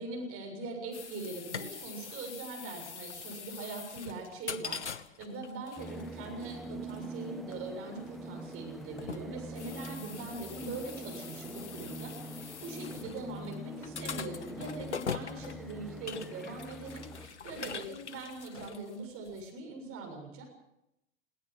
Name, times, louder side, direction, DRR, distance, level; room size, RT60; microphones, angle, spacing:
voice 1, 0.0-20.5, right 3 dB, 40° right, 3 dB, 7.1 m, -42 dB
sound 1, 0.9-19.5, left 6 dB, 80° left, 1.1 m, -43 dB
sound 2, 5.8-17.3, equal, ahead, 1.9 m, -44 dB
21.0 x 18.5 x 7.7 m, 0.84 s
figure-of-eight pair, 85°, 34 cm